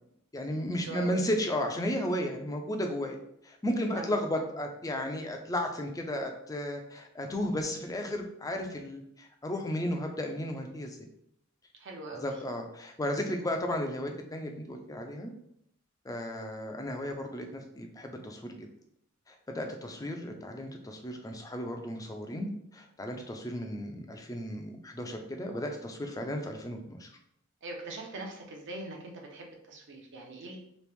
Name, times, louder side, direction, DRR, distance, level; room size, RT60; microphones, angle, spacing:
voice 1, 0.3-3.2 3.4-11.0 12.2-15.3 16.0-18.6 19.3-27.1, left 1 dB, 15° left, 3 dB, 0.4 m, -34 dB
voice 2, 0.8-1.2 3.7-4.4 11.8-12.4 27.6-30.6, right 2 dB, 60° right, 1 dB, 0.8 m, -42 dB
3.1 x 2.9 x 3.4 m, 0.72 s
head